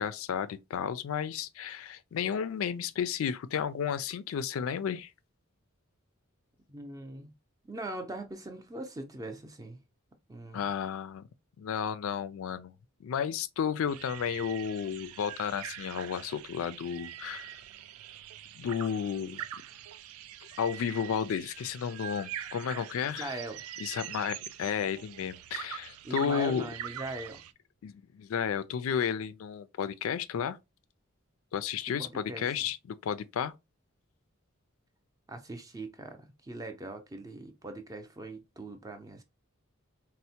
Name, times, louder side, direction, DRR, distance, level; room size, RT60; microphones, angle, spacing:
voice 1, 0.0-5.1 10.5-11.3 11.6-12.7 13.0-17.5 18.6-19.4 20.6-23.3 23.8-26.6 27.8-30.6 31.5-32.8 33.0-33.5, left 7 dB, 70° left, 0.3 m, -32 dB
voice 2, 6.7-7.3 7.7-9.8 10.3-10.7 23.2-23.6 26.0-27.4 32.0-32.7 35.3-39.2, right 2 dB, 15° right, 0.5 m, -41 dB
sound 1, 13.9-27.5, right 11 dB, 90° right, 0.3 m, -43 dB
4.2 x 2.1 x 2.8 m
head